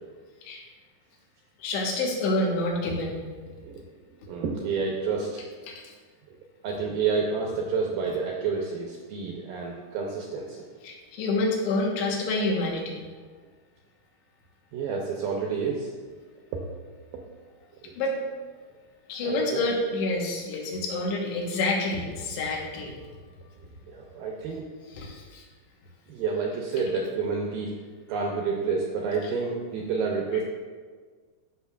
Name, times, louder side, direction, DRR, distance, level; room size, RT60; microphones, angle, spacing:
voice 1, 1.6-3.2 5.7-5.8 10.8-13.1 18.0-18.2 19.1-22.9 24.9-25.4, left 2 dB, 90° left, -1 dB, 3.4 m, -28 dB
voice 2, 4.3-5.4 6.6-10.6 14.7-15.9 17.8-17.9 19.2-19.6 23.9-24.6 26.1-27.7 28.1-30.4, right 5 dB, 80° right, -1 dB, 2.0 m, -29 dB
14.0 x 5.6 x 2.4 m, 1.5 s
omnidirectional pair, 4.8 m